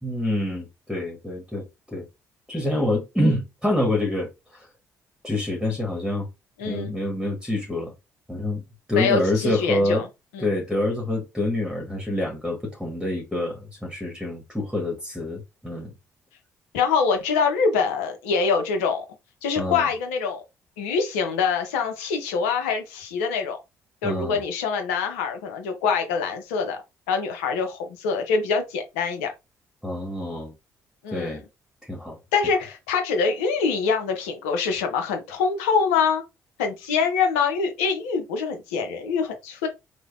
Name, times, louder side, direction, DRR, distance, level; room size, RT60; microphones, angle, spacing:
voice 1, 0.0-2.1 2.5-4.7 5.2-6.3 6.6-7.9 8.3-8.6 8.9-10.0 10.4-15.9 19.6-19.9 24.0-24.4 29.8-30.5 31.1-31.4 31.8-32.2, left 1 dB, ahead, 1.1 m, -26 dB
voice 2, 6.6-6.9 8.9-10.1 10.3-10.6 16.7-19.0 19.4-20.4 20.8-23.6 24.0-26.8 27.1-29.3 31.0-31.4 32.3-36.2 36.6-39.7, left 5 dB, 85° left, 0.6 m, -24 dB
3.3 x 2.1 x 2.3 m
hypercardioid pair, 50°, 7 cm